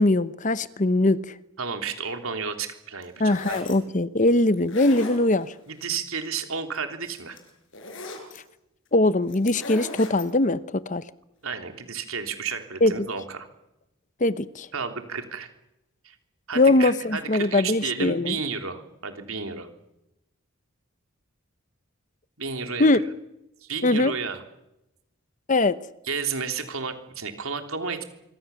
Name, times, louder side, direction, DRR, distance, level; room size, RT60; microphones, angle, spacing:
voice 1, 0.0-1.3 3.2-5.5 8.9-11.0 12.8-13.1 14.2-14.7 16.6-18.3 22.8-23.0 23.8-24.1 25.5-25.8, left 2 dB, 35° left, 0.9 m, -21 dB
voice 2, 1.6-3.6 5.7-7.4 11.4-13.5 14.7-15.5 16.0-16.1 16.5-19.7 22.4-22.9 23.6-24.4 26.0-28.0, right 5 dB, 80° right, 3.4 m, -32 dB
sound 1, 3.0-3.8 4.5-5.6 6.7-6.8 7.1-8.4 9.3-10.3, left 2 dB, 60° left, 6.8 m, -38 dB
25.5 x 24.5 x 7.1 m
head